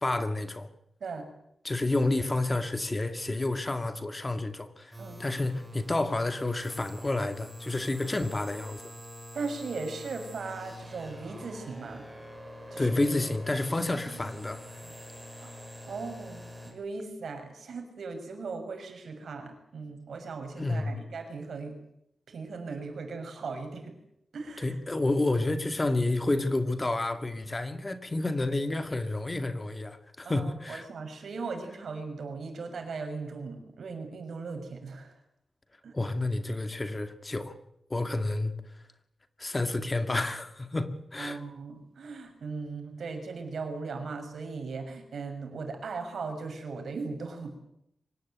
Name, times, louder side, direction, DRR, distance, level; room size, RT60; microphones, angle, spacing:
voice 1, 0.0-0.7 1.6-4.9 5.2-8.9 12.8-14.6 20.6-21.0 24.6-30.9 35.9-37.5 37.9-38.5 39.4-41.4, left 2 dB, 20° left, 2.2 m, -30 dB
sound 1, 4.9-16.7, equal, 10° right, 7.2 m, -45 dB
voice 2, 9.3-12.1 12.7-12.9 13.9-14.0 14.8-14.9 15.4-15.5 15.9-21.7 22.3-23.9 24.3-24.8 30.2-35.1 35.8-35.9 41.2-47.6, right 4 dB, 80° right, 6.6 m, -38 dB
24.5 x 19.0 x 9.3 m
wide cardioid pair, 130°, 0 cm